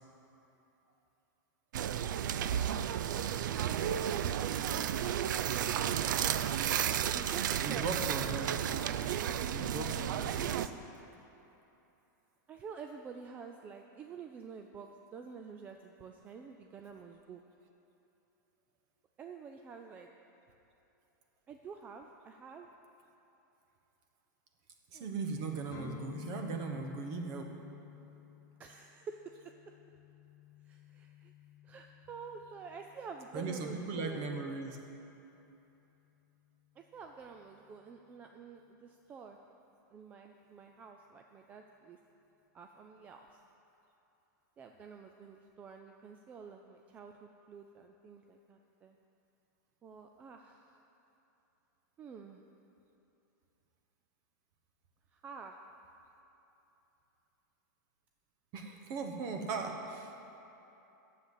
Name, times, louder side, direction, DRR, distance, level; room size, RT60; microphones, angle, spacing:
sound 1, 1.7-10.7, right 9 dB, 75° right, 0.5 m, -33 dB
voice 1, 3.6-4.9 5.4-5.5 7.1-7.9 8.4-8.5 12.5-17.4 19.2-20.1 21.5-22.7 24.9-25.1 28.6-29.5 30.6-31.3 31.6-34.3 36.8-39.4 39.9-42.0 42.5-43.4 44.6-49.0 49.8-50.8 52.0-52.4 55.1-55.6, right 5 dB, 15° right, 4 dB, 0.3 m, -49 dB
voice 2, 7.6-8.6 9.5-10.8 24.9-27.5 33.3-34.8 58.5-60.2, right 4 dB, 35° right, 4 dB, 1.1 m, -38 dB
sound 2, 25.7-33.5, left 8 dB, 40° left, 1.3 m, -51 dB
9.8 x 7.5 x 8.1 m, 3.0 s
supercardioid pair, 165°, 10 cm